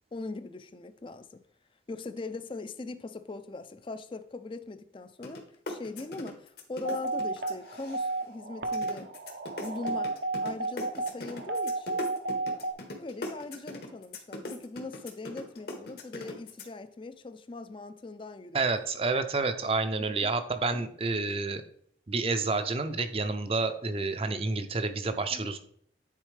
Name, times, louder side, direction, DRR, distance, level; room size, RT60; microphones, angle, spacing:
voice 1, 0.1-1.4 1.9-9.1 9.6-10.1 10.4-12.0 13.0-18.7 20.0-20.3 25.3-25.5, left 3 dB, 30° left, 0.4 m, -41 dB
sound 1, 5.2-5.4 5.7-8.3 8.7-16.6, left 2 dB, 60° left, 1.1 m, -39 dB
sound 2, 6.8-12.7, right 3 dB, 75° right, 0.8 m, -32 dB
voice 2, 18.5-21.6 22.1-25.6, right 3 dB, 30° right, 0.5 m, -29 dB
9.3 x 4.2 x 3.3 m
head